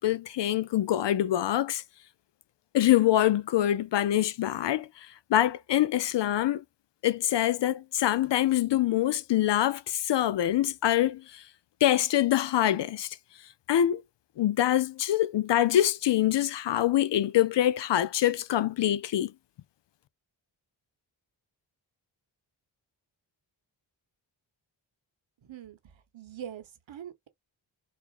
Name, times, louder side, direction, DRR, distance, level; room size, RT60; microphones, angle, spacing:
voice 1, 0.0-1.8 2.7-6.6 7.0-11.4 11.8-13.2 13.7-14.0 14.4-19.3, left 12 dB, 65° left, 0.5 m, -25 dB
voice 2, 26.1-27.3, right 9 dB, 70° right, 1.1 m, -43 dB
4.4 x 2.4 x 2.4 m
cardioid pair, 50°, 47 cm